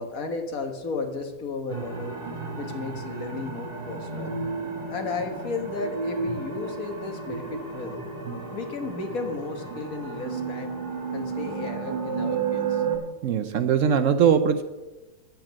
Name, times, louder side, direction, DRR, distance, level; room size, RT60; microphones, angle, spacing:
voice 1, 0.0-2.1 2.6-4.3 4.9-8.0 8.5-10.7 11.1-12.8, left 3 dB, 65° left, 5 dB, 1.8 m, -34 dB
sound 1, 1.7-13.0, right 5 dB, 40° right, 2.0 m, -32 dB
voice 2, 13.2-14.6, right 7 dB, 65° right, 9 dB, 0.9 m, -21 dB
9.1 x 7.5 x 7.4 m, 1.1 s
omnidirectional pair, 1.6 m